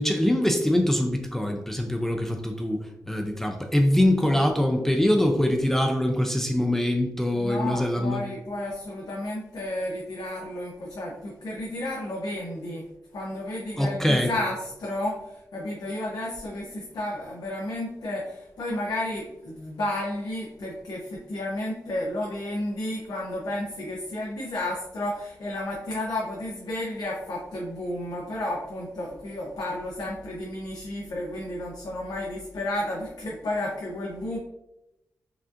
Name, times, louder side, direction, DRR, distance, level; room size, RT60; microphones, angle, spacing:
voice 1, 0.0-8.2 13.8-14.3, left 1 dB, 5° left, 3 dB, 0.4 m, -23 dB
voice 2, 7.3-12.8 13.1-34.4, left 1 dB, 80° left, -4 dB, 0.7 m, -32 dB
4.8 x 2.5 x 2.5 m, 0.92 s
wide cardioid pair, 105°, 7 cm